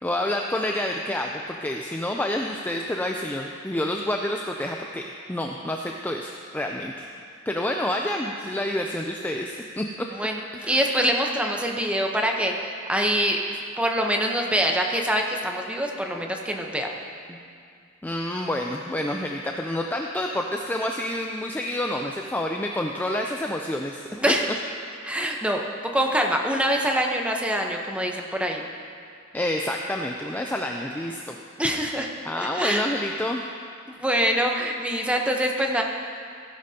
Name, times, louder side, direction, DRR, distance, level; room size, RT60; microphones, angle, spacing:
voice 1, 0.0-5.0 5.3-7.1 7.5-10.1 10.5-10.9 18.0-24.1 29.3-31.4 32.2-33.4, left 1 dB, 10° left, 1 dB, 0.4 m, -28 dB
voice 2, 10.2-12.5 12.9-13.4 13.8-16.9 24.2-24.5 25.0-25.6 25.9-28.6 31.6-32.1 32.4-32.9 33.9-35.8, equal, 5° right, 1 dB, 0.9 m, -24 dB
16.0 x 10.5 x 2.8 m, 2.3 s
head